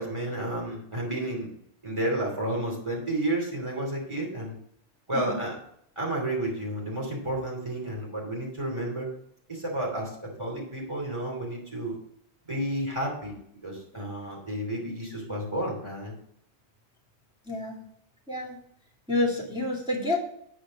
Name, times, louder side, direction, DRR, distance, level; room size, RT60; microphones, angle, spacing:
voice 1, 0.0-1.5 1.8-4.6 5.1-5.6 6.0-9.1 9.5-10.1 10.4-11.9 12.5-13.4 13.6-16.2, right 1 dB, 25° right, -2 dB, 2.9 m, -31 dB
voice 2, 17.4-17.8 18.3-18.6 19.1-20.2, left 2 dB, 5° right, -6 dB, 2.6 m, -28 dB
8.9 x 5.1 x 5.1 m, 0.70 s
omnidirectional pair, 1.2 m